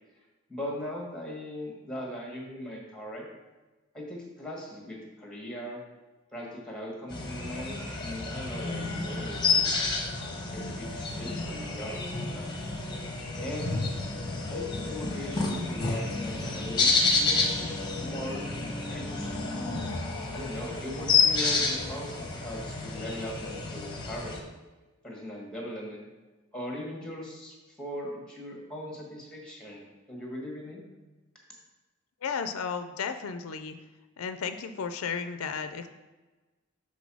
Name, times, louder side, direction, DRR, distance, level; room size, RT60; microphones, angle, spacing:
voice 1, 0.5-3.3 3.9-5.8 6.3-10.0 10.3-12.5 13.4-13.9 14.5-19.4 20.3-24.4 25.0-26.1 26.5-30.8, left 1 dB, 5° left, -2 dB, 1.4 m, -39 dB
sound 1, 7.1-24.4, left 4 dB, 20° left, 1.0 m, -30 dB
voice 2, 32.2-33.8 34.2-35.9, left 6 dB, 80° left, 9 dB, 0.4 m, -33 dB
6.1 x 3.7 x 6.1 m, 1.2 s
head